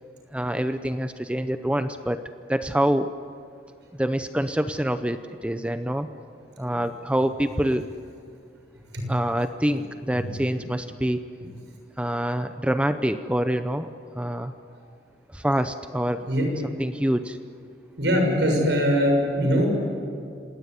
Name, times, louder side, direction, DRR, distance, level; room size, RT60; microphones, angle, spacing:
voice 1, 0.3-2.2 2.5-3.1 3.9-6.1 6.6-7.9 9.1-11.2 12.0-13.9 14.1-14.5 15.3-16.3 16.8-17.4, right 1 dB, 5° right, 10 dB, 0.6 m, -26 dB
voice 2, 18.0-19.7, equal, 70° right, 2 dB, 6.8 m, -22 dB
26.5 x 18.5 x 9.7 m, 2.4 s
head